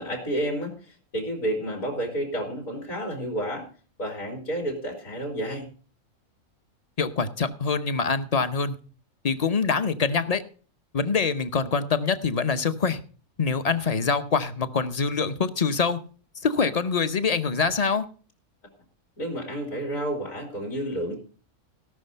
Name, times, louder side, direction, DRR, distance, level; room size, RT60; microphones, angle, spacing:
voice 1, 0.0-3.7 4.0-5.7 19.2-21.2, right 1 dB, 65° left, 0 dB, 3.6 m, -30 dB
voice 2, 7.0-8.8 9.2-10.4 10.9-13.0 13.4-16.0 16.4-18.0, left 5 dB, 40° left, 11 dB, 0.6 m, -24 dB
17.0 x 6.2 x 5.5 m, 0.40 s
omnidirectional pair, 1.5 m